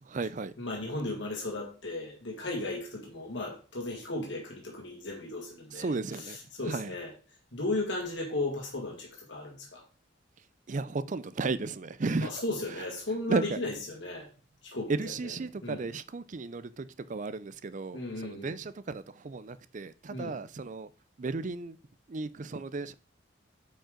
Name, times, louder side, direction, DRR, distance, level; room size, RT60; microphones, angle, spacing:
voice 1, 0.0-0.5 5.7-6.9 10.7-12.4 12.7-12.8 13.3-13.6 14.9-20.9 21.2-21.8 22.1-22.9, right 3 dB, 40° right, 0.5 m, -34 dB
voice 2, 0.6-5.9 6.2-7.1 7.5-9.8 12.2-14.3 14.6-15.3 15.6-15.9 17.9-18.6 20.1-20.4, left 2 dB, 70° left, 2.0 m, -35 dB
8.8 x 5.4 x 3.8 m
head